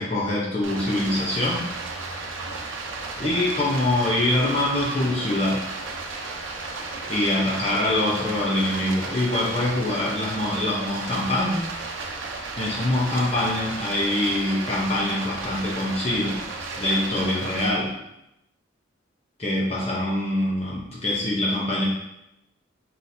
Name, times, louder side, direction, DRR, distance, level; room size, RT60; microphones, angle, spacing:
voice 1, 0.0-1.6 3.2-5.6 7.1-11.7 12.3-16.4 16.8-17.9 19.4-21.9, left 1 dB, 30° left, -5 dB, 0.7 m, -24 dB
Stream, 0.6-17.7, right 3 dB, 85° right, 0.7 m, -34 dB
4.1 x 3.7 x 2.7 m, 0.85 s
head